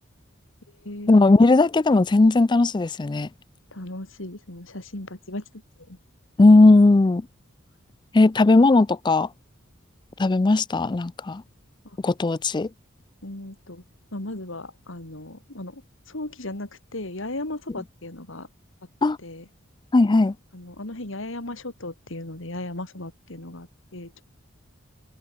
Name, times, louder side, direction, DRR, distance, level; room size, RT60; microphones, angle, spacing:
voice 1, 1.1-3.3 6.4-7.3 8.1-9.3 10.2-11.4 12.0-12.7 19.0-19.2 19.9-20.3, left 2 dB, 20° left, 0.4 m, -17 dB
voice 2, 3.7-5.4 5.9-6.0 10.5-10.6 11.8-12.0 13.2-13.8 14.1-18.5 19.2-19.4 20.5-24.2, left 2 dB, 65° left, 3.0 m, -36 dB
head